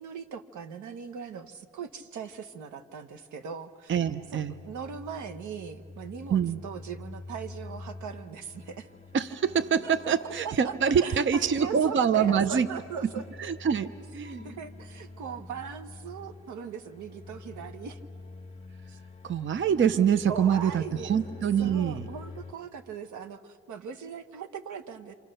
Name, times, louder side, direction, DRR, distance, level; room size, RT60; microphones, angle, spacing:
voice 1, 0.0-4.0 4.3-8.9 10.2-10.7 11.0-13.2 14.3-18.0 18.9-19.0 20.3-21.3 21.6-25.1, right 6 dB, 75° right, 9 dB, 1.2 m, -40 dB
voice 2, 3.9-4.5 6.3-6.6 9.1-12.7 13.0-13.1 13.4-14.4 19.2-22.1, right 7 dB, 40° right, 12 dB, 0.7 m, -25 dB
sound 1, 4.0-22.5, left 3 dB, 20° left, 1.8 m, -46 dB
27.0 x 25.5 x 6.6 m, 2.5 s
cardioid pair, 90°, 30 cm